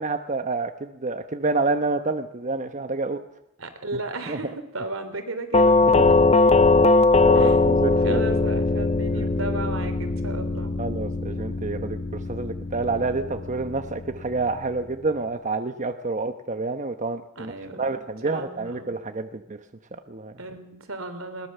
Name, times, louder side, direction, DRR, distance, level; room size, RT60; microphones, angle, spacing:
voice 1, 0.0-3.2 4.3-4.4 6.0-6.1 7.2-8.2 9.2-9.3 10.8-12.0 12.3-19.6 20.1-20.3, right 3 dB, 40° right, 8 dB, 1.0 m, -28 dB
voice 2, 3.6-5.8 7.3-7.6 8.0-10.7 17.4-18.9 20.4-21.5, right 2 dB, 85° right, 8 dB, 3.3 m, -34 dB
Doorbell, 5.5-14.4, left 3 dB, 30° left, 0.8 m, -21 dB
21.0 x 20.0 x 6.8 m, 0.82 s
head